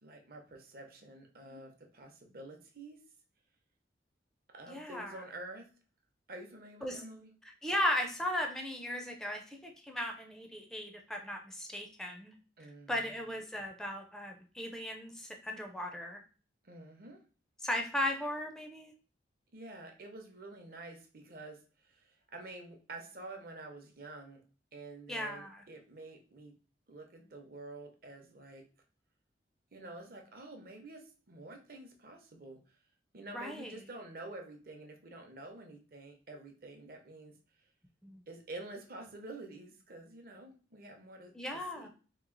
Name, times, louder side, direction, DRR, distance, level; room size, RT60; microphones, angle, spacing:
voice 1, 0.0-3.0 4.5-5.7 6.3-7.3 12.6-13.1 16.6-17.2 19.5-24.4 24.7-26.5 26.9-28.6 29.7-32.6 33.1-37.3 38.3-41.3 41.7-41.9, right 2 dB, 55° right, 3 dB, 0.7 m, -48 dB
voice 2, 4.7-5.2 6.8-7.0 7.4-12.3 12.9-16.2 17.6-18.9 25.1-25.7 33.3-33.8 38.0-38.2 41.3-41.9, left 1 dB, 5° left, 3 dB, 0.4 m, -37 dB
3.0 x 2.8 x 3.8 m, 0.37 s
head